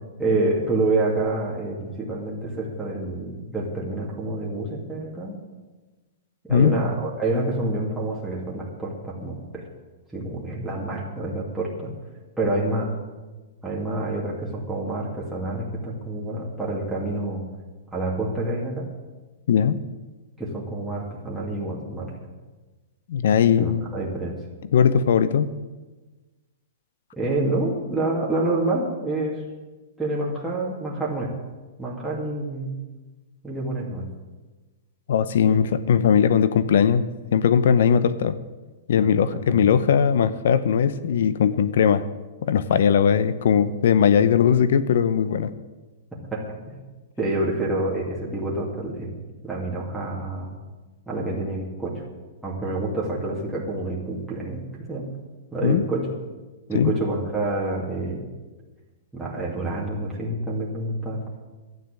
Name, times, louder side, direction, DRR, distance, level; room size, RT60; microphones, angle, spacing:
voice 1, 0.2-5.4 6.4-9.7 10.1-11.9 12.4-12.9 13.6-17.4 17.9-18.9 20.4-22.2 23.6-24.4 27.2-29.4 30.0-31.3 31.8-32.7 33.4-34.1 35.4-35.6 38.9-39.1 39.5-39.6 46.3-46.8 47.2-49.1 49.4-50.6 51.1-52.0 52.4-55.1 55.5-56.1 56.7-58.2 59.1-61.2, right 2 dB, 5° right, -6 dB, 2.4 m, -27 dB
voice 2, 19.5-19.8 23.1-23.9 24.7-25.5 35.1-38.4 38.9-42.1 42.4-45.5 55.6-55.8 56.7-56.9, left 7 dB, 70° left, 14 dB, 0.8 m, -19 dB
12.0 x 9.4 x 9.0 m, 1.2 s
hypercardioid pair, 150°, 0 cm